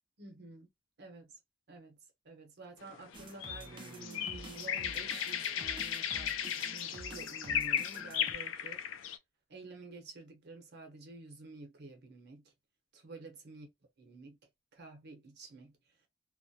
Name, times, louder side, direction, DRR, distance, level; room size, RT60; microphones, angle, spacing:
voice 1, 0.2-0.7 1.0-1.4 1.7-2.0 2.2-8.8 9.5-12.4 12.9-13.7 14.0-14.4 14.7-15.7, right 3 dB, 60° right, 0.8 m, -50 dB
sound 1, 2.9-9.2, left 9 dB, 80° left, 0.4 m, -36 dB
sound 2, 3.1-8.3, right 2 dB, 25° right, 0.4 m, -50 dB
2.3 x 2.0 x 2.6 m
head